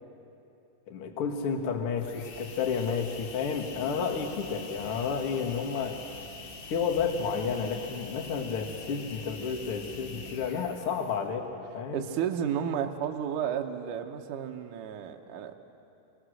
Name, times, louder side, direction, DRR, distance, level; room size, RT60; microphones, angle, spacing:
voice 1, 0.9-6.0 6.7-12.0, left 6 dB, 60° left, 2 dB, 1.4 m, -31 dB
sound 1, 2.0-11.3, left 4 dB, 85° left, 3.9 m, -44 dB
voice 2, 11.9-15.5, right 8 dB, 80° right, 4 dB, 1.8 m, -32 dB
24.0 x 20.0 x 6.5 m, 2.7 s
omnidirectional pair, 5.2 m